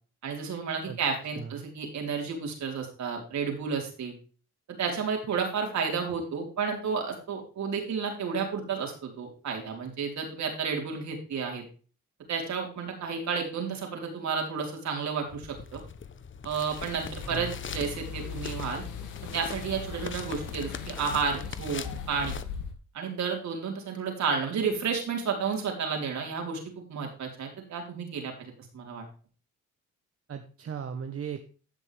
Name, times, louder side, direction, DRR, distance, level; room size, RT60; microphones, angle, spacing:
voice 1, 0.2-4.1 4.8-11.6 12.3-15.8 16.4-18.8 19.3-22.3 22.9-29.0, right 5 dB, 65° right, 1 dB, 4.6 m, -31 dB
sound 1, 15.3-22.4, left 6 dB, 40° left, 1.1 m, -42 dB
sound 2, 16.8-22.7, left 6 dB, 85° left, 2.7 m, -39 dB
voice 2, 30.3-31.4, right 7 dB, 50° right, 6 dB, 1.4 m, -37 dB
15.0 x 6.5 x 3.5 m, 0.38 s
cardioid pair, 90°, 30 cm